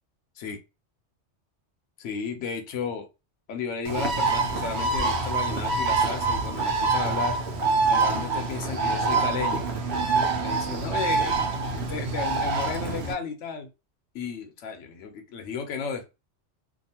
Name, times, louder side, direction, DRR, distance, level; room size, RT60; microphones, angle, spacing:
voice 1, 2.0-3.1 3.5-7.4 7.9-9.7 10.4-11.4 11.8-13.7 14.1-16.1, left 5 dB, 85° left, 1.0 m, -33 dB
Bird, 3.9-13.1, right 3 dB, 70° right, 0.9 m, -25 dB
2.6 x 2.4 x 2.7 m
omnidirectional pair, 1.2 m